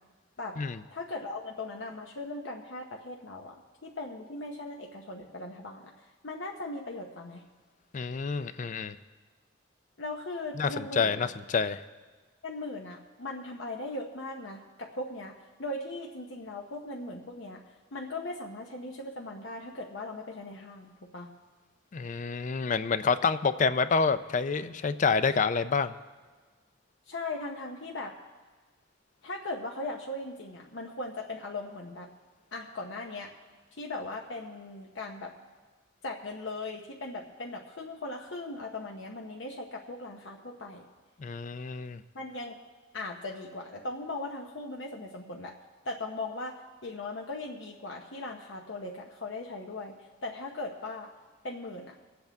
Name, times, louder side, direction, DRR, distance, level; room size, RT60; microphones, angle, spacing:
voice 1, 0.9-7.4 10.0-11.3 12.4-15.3 15.6-17.6 17.9-21.3 27.1-28.2 29.2-32.1 32.5-33.3 33.8-35.3 36.0-40.8 42.1-42.6 42.9-45.6 45.8-51.1 51.4-52.0, left 2 dB, 70° left, 0 dB, 0.9 m, -39 dB
voice 2, 7.9-9.0 10.6-11.8 21.9-25.9 41.2-42.0, left 5 dB, 40° left, 13 dB, 0.4 m, -28 dB
22.5 x 7.9 x 3.5 m, 1.4 s
head